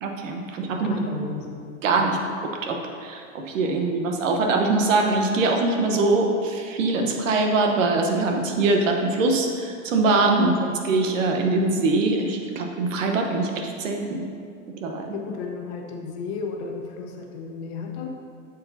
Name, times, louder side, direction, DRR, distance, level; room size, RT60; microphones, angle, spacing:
voice 1, 0.0-1.0 1.8-2.2 2.6-10.5 10.9-14.2 14.8-15.2, right 3 dB, 80° right, 3 dB, 1.1 m, -23 dB
voice 2, 0.7-1.5 1.9-2.0 10.4-10.5 15.1-18.1, left 5 dB, 55° left, 2 dB, 1.1 m, -32 dB
8.0 x 6.8 x 2.7 m, 2.3 s
hypercardioid pair, 125°, 38 cm